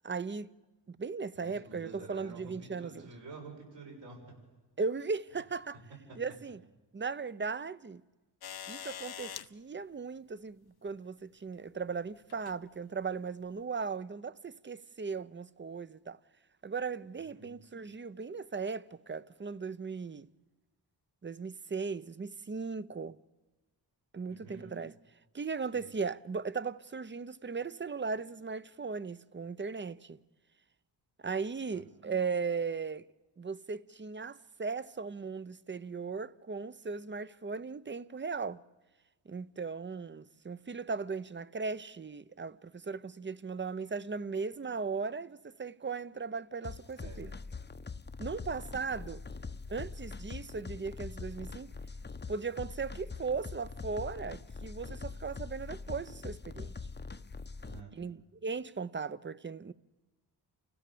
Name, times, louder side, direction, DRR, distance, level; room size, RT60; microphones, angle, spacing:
voice 1, 0.0-0.5 0.9-3.1 4.8-5.8 6.1-6.6 6.9-8.0 8.7-16.2 16.6-20.3 21.2-23.2 24.1-24.9 25.3-30.2 31.2-33.1 33.4-38.6 39.3-47.3 48.2-49.2 49.7-51.7 52.3-56.8 57.9-59.7, right 5 dB, 25° right, 0.8 m, -37 dB
voice 2, 1.3-4.2 6.1-6.2 17.3-17.5 24.3-24.7 25.7-25.9 31.7-31.8 47.0-47.2 49.8-49.9 57.6-58.0, right 3 dB, 80° right, 7.7 m, -49 dB
sound 1, 8.4-9.5 10.9-11.0 12.3-12.6 13.5-13.6, left 9 dB, 60° left, 0.9 m, -43 dB
sound 2, 46.6-57.8, left 4 dB, 25° left, 0.9 m, -43 dB
29.5 x 16.0 x 6.9 m
cardioid pair, 55°, 44 cm